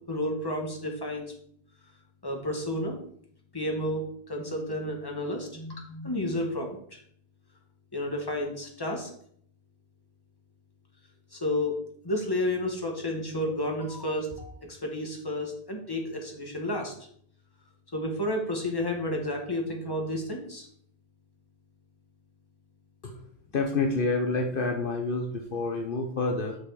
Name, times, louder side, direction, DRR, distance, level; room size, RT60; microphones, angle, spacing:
voice 1, 0.1-1.3 2.2-3.0 3.5-7.0 7.9-9.1 11.3-16.9 17.9-20.7, left 1 dB, 20° left, 1 dB, 1.6 m, -31 dB
voice 2, 23.5-26.6, left 3 dB, 60° left, 2 dB, 1.1 m, -28 dB
6.6 x 6.3 x 4.9 m, 0.64 s
omnidirectional pair, 1.0 m